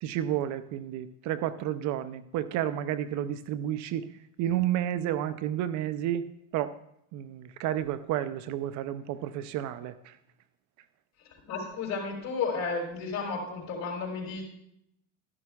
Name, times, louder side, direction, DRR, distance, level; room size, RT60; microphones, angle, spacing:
voice 1, 0.0-4.1 4.4-6.2 6.5-6.7 7.1-10.1, right 11 dB, 50° right, 14 dB, 0.6 m, -31 dB
voice 2, 11.5-14.4, left 4 dB, 45° left, -1 dB, 4.0 m, -32 dB
12.0 x 11.0 x 2.3 m, 0.76 s
hypercardioid pair, 90°, 37 cm